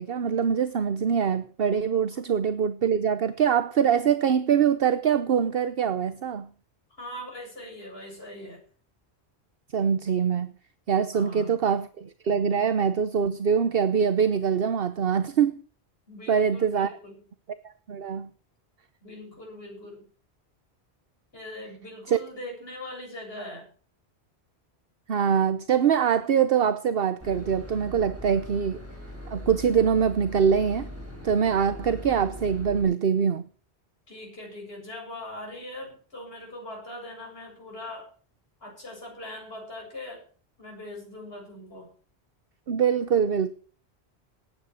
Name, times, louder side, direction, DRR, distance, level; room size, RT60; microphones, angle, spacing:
voice 1, 0.0-6.5 9.7-10.5 10.9-15.6 16.3-17.0 17.6-18.3 22.1-22.2 25.1-28.8 29.3-30.9 31.2-33.5 42.7-43.5, right 7 dB, 60° right, 1.0 m, -24 dB
voice 2, 7.0-8.6 11.1-11.6 16.1-17.2 19.0-20.0 21.3-23.7 34.1-38.1 38.6-40.2 40.6-41.9, left 1 dB, 65° left, 7.8 m, -41 dB
Boat Water vehicle / Engine, 27.2-32.8, left 1 dB, 10° right, 6.8 m, -41 dB
18.5 x 9.5 x 6.4 m
omnidirectional pair, 1.1 m